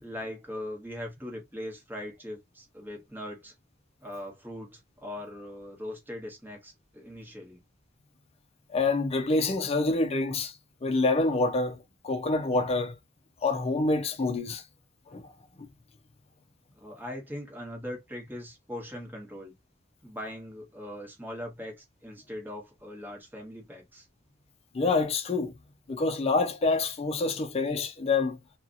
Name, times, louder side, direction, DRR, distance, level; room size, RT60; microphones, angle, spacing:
voice 1, 0.0-3.5 4.0-7.6 16.7-19.5 20.0-24.1, left 1 dB, 10° right, 1.2 m, -40 dB
voice 2, 8.7-10.5 10.8-11.8 12.0-13.0 13.4-14.6 15.1-15.3 24.7-25.5 25.9-28.4, left 3 dB, 30° left, 0.5 m, -26 dB
2.8 x 2.4 x 2.5 m
head